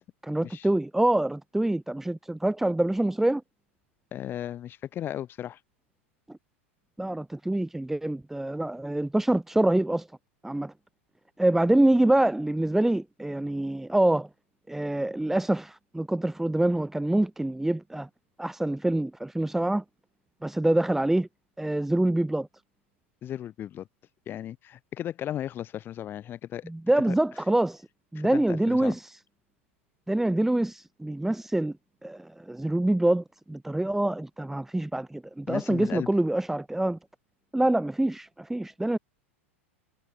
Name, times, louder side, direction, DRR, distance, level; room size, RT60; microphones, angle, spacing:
voice 1, 0.2-3.4 7.0-10.1 10.4-10.7 11.4-14.3 14.7-18.1 18.4-19.8 20.4-21.3 21.6-22.5 26.6-27.9 28.1-29.2 30.1-31.7 32.0-37.0 37.5-39.0, right 1 dB, 5° right, 3.9 m, -25 dB
voice 2, 4.1-5.6 23.2-23.9 24.3-26.6 27.1-27.2 28.2-28.9 35.5-36.1, left 11 dB, 30° left, 7.7 m, -35 dB
figure-of-eight pair, 90°, 7 cm